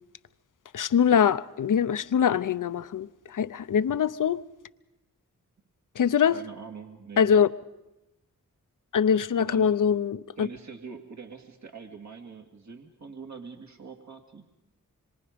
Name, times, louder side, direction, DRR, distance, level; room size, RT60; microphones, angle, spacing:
voice 1, 0.7-4.4 6.0-6.4 7.2-7.5 8.9-10.5, left 7 dB, 65° left, 0.8 m, -23 dB
voice 2, 6.0-7.4 9.3-9.8 10.4-14.5, right 5 dB, 55° right, 2.1 m, -44 dB
25.5 x 23.5 x 5.2 m
cardioid pair, 40°, 34 cm